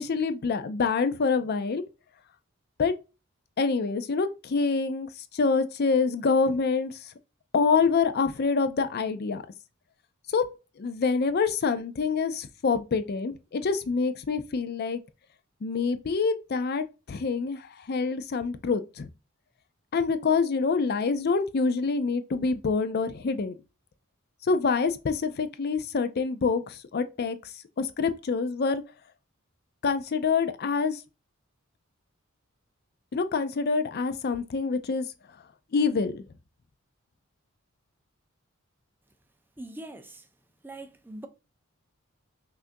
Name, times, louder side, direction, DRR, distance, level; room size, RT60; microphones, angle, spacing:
voice 1, 0.0-1.8 2.8-2.9 3.6-7.1 7.5-9.4 10.3-10.5 10.8-15.0 15.6-19.1 19.9-23.5 24.5-27.4 27.8-28.8 29.8-31.0 33.1-35.1 35.7-36.2, left 4 dB, 50° left, 0.4 m, -26 dB
voice 2, 39.6-40.3 40.6-41.3, right 1 dB, 10° right, 0.4 m, -42 dB
5.7 x 2.5 x 2.6 m
head